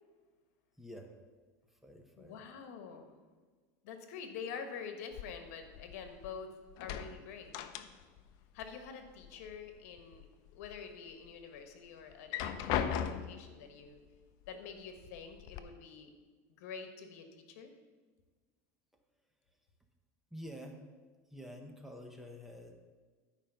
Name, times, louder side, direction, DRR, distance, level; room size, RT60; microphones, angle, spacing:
voice 1, 0.8-1.1 1.7-2.4 20.3-20.8 21.3-22.9, equal, 5° right, 3 dB, 1.0 m, -48 dB
voice 2, 2.2-3.1 3.8-7.6 8.5-10.2 10.5-14.0 14.5-16.1 16.5-17.7, left 6 dB, 75° left, 6 dB, 1.4 m, -47 dB
sound 1, 5.1-6.4 6.7-8.3 8.6-9.6 10.0-10.8 11.2-11.3 12.1-13.5 14.5-14.6 15.0-15.6, left 9 dB, 55° left, 0.6 m, -38 dB
11.5 x 5.1 x 5.6 m, 1.4 s
supercardioid pair, 135°, 8 cm